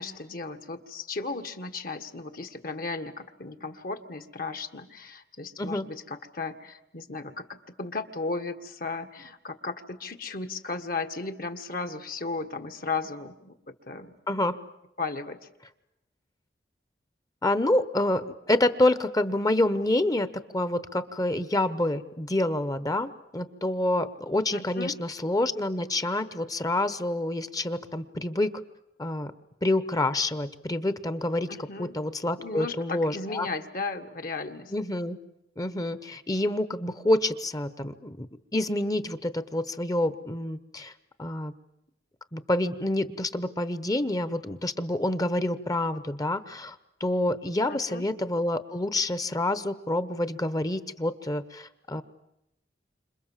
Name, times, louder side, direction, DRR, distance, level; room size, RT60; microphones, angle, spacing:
voice 1, 0.0-7.5 7.8-13.6 13.9-14.1 15.0-15.4 24.5-25.0 31.5-32.0 32.4-34.7 47.7-48.1, left 3 dB, 55° left, 8 dB, 1.8 m, -35 dB
voice 2, 14.3-14.6 17.4-28.5 29.0-29.3 29.6-33.5 34.7-35.2 35.6-38.3 38.5-40.9 41.2-41.5 42.3-52.0, left 1 dB, 20° left, 13 dB, 1.0 m, -27 dB
29.5 x 26.5 x 7.5 m, 0.84 s
head